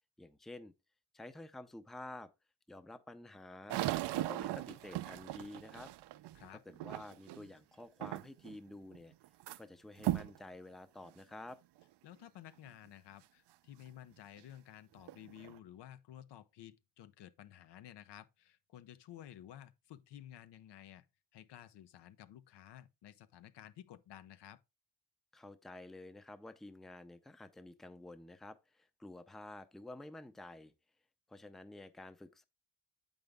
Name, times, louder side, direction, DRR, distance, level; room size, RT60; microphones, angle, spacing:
voice 1, 0.2-0.7 1.1-2.3 2.7-3.8 4.1-5.9 6.5-9.1 9.6-11.6 25.3-30.7 31.3-32.4, left 2 dB, ahead, 0.5 m, -50 dB
sound 1, 3.7-7.5 8.0-8.6 8.9-9.6 10.0-10.4 11.0-11.1 11.8-11.9 14.4-14.5 15.0-15.6, right 15 dB, 80° right, 0.5 m, -38 dB
voice 2, 12.0-21.1 21.3-24.6, left 11 dB, 80° left, 0.7 m, -54 dB
7.9 x 5.3 x 3.5 m
cardioid pair, 115°, 41 cm